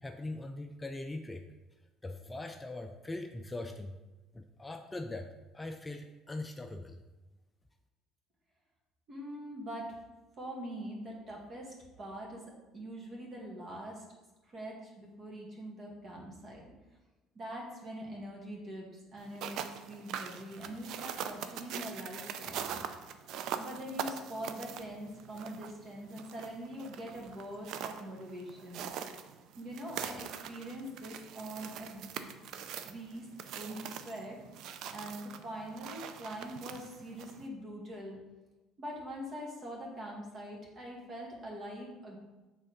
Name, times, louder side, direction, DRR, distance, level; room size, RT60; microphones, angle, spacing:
voice 1, 0.0-1.5 2.0-3.9 4.3-5.3 5.5-7.0, left 2 dB, 15° left, 5 dB, 0.4 m, -41 dB
voice 2, 9.1-9.9 10.4-12.4 12.7-14.0 14.5-16.7 17.4-22.8 23.6-28.8 29.6-32.3 32.8-33.3 33.5-34.4 34.9-38.2 38.8-42.2, equal, 40° right, -2 dB, 2.0 m, -43 dB
sound 1, 19.2-37.5, right 8 dB, 65° right, 0.5 m, -43 dB
6.6 x 3.7 x 5.2 m, 1.1 s
cardioid pair, 100°, 0 cm